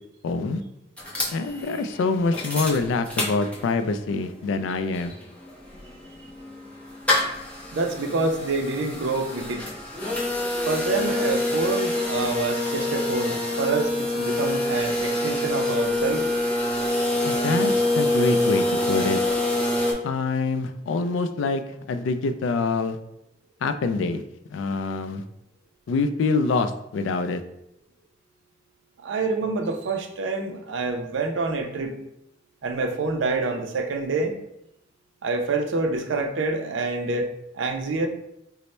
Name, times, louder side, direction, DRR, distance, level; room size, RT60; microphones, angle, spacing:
voice 1, 0.2-0.6 1.3-5.1 17.2-19.2 20.0-21.6 21.9-23.0 23.6-24.2 24.5-25.2 25.9-27.4, left 3 dB, 90° left, 9 dB, 0.3 m, -25 dB
sound 1, 1.0-3.9 4.3-4.4 4.6-19.9, left 1 dB, 5° left, 0.7 m, -26 dB
voice 2, 7.7-9.7 10.7-16.3 29.0-31.9 32.6-34.3 35.2-38.1, right 3 dB, 85° right, 4 dB, 0.5 m, -27 dB
3.1 x 2.0 x 4.1 m, 0.80 s
head